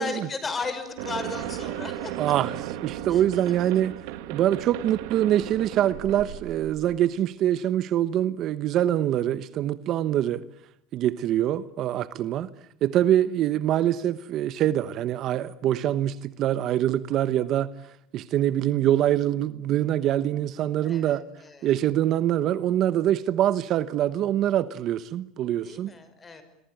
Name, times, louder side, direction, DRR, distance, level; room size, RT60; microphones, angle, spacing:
voice 1, 0.0-2.2 3.1-3.2 20.8-21.7 25.6-26.4, left 4 dB, 20° left, 5.9 m, -35 dB
sound 1, 1.0-7.0, right 13 dB, 75° right, 2.5 m, -36 dB
voice 2, 2.2-2.5 2.8-3.9 4.3-10.4 10.9-12.5 12.8-17.7 18.1-21.2 21.6-25.9, right 12 dB, 45° right, 1.1 m, -24 dB
27.0 x 23.5 x 9.3 m
supercardioid pair, 130°, 0 cm